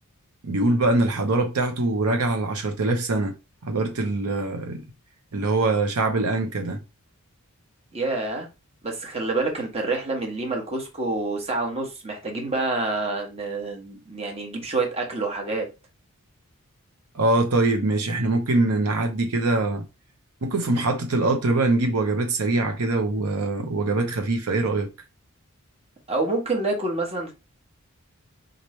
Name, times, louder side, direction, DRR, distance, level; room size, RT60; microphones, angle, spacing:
voice 1, 0.4-3.3 3.6-4.8 5.3-6.8 17.1-19.8 20.4-24.9, right 2 dB, 85° right, 0.8 m, -23 dB
voice 2, 7.9-8.5 8.8-15.7 26.1-27.3, right 2 dB, 30° right, 1.1 m, -27 dB
3.9 x 3.1 x 3.1 m
head